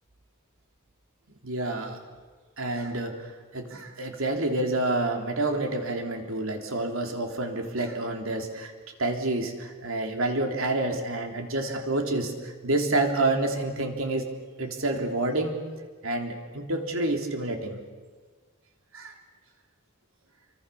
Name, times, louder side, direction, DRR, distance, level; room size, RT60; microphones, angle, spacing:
voice 1, 1.4-2.0 2.6-3.2 3.5-8.7 9.0-14.3 14.6-15.6 16.0-17.8 18.9-19.1, right 2 dB, 70° right, 4 dB, 3.5 m, -28 dB
30.0 x 24.0 x 7.1 m, 1.5 s
head